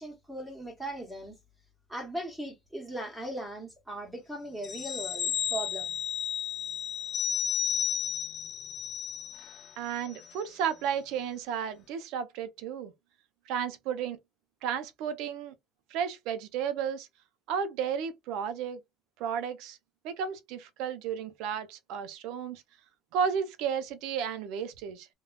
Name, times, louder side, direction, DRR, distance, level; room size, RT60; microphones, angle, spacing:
voice 1, 0.0-1.3 1.9-5.9, right 1 dB, 5° right, 1.0 m, -38 dB
sound 1, 4.6-9.7 10.1-10.2, left 9 dB, 45° left, 0.8 m, -33 dB
voice 2, 9.8-12.9 13.5-14.2 14.6-15.5 15.9-17.1 17.5-18.8 19.2-19.8 20.0-22.6 23.1-25.1, right 7 dB, 80° right, 0.6 m, -33 dB
3.5 x 2.3 x 2.2 m
cardioid pair, 135°, 0 cm